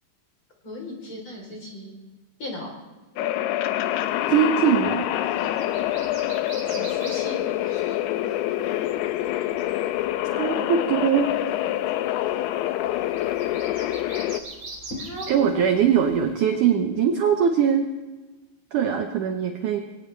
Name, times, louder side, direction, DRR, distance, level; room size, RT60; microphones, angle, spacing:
voice 1, 0.6-2.0 2.4-2.7 6.7-8.0 12.1-12.2 15.0-15.7, left 1 dB, 30° left, -1 dB, 4.1 m, -37 dB
sound 1, 3.2-14.4, left 13 dB, 80° left, 2.6 m, -26 dB
sound 2, 4.0-16.4, right 3 dB, 35° right, 3.6 m, -45 dB
voice 2, 4.3-5.0 10.3-11.3 15.3-17.8 18.7-19.8, right 8 dB, 80° right, 4 dB, 1.8 m, -21 dB
22.5 x 17.5 x 3.3 m, 1.2 s
omnidirectional pair, 5.0 m